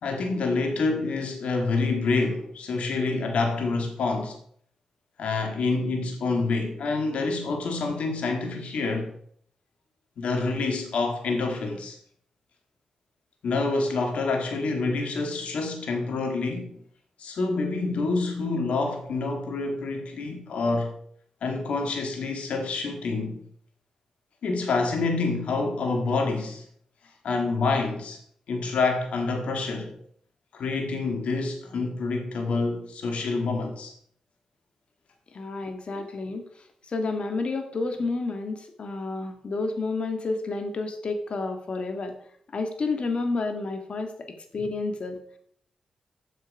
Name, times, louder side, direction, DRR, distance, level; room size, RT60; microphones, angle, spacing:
voice 1, 0.0-4.4 5.2-9.1 10.2-12.0 13.4-16.8 17.2-20.9 21.4-23.4 24.4-26.6 27.2-28.2 28.5-30.0 30.5-33.9, left 3 dB, 80° left, 1.9 m, -27 dB
voice 2, 35.3-36.4 36.9-42.1 42.5-45.4, left 3 dB, 60° left, 1.8 m, -30 dB
9.0 x 7.5 x 4.8 m
supercardioid pair, 45°, 2 cm